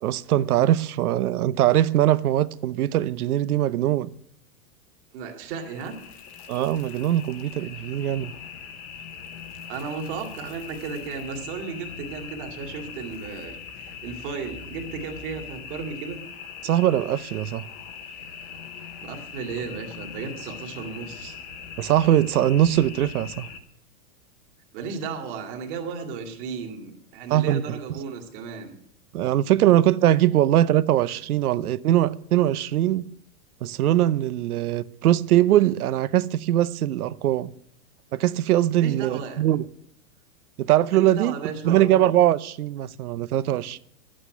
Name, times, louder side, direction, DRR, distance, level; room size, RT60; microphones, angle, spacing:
voice 1, 0.0-4.1 6.5-8.3 16.6-17.6 21.8-23.5 27.3-27.8 29.1-33.0 33.6-37.5 38.1-39.6 40.6-41.3 41.6-43.8, right 13 dB, 90° right, 0.8 m, -21 dB
voice 2, 5.1-6.0 9.7-16.2 18.8-21.4 24.7-28.8 38.8-39.4 40.9-41.9, right 5 dB, 35° right, 2.2 m, -34 dB
sound 1, 5.6-23.6, left 7 dB, 20° left, 0.7 m, -41 dB
11.5 x 8.8 x 9.0 m
supercardioid pair, 175°, 43 cm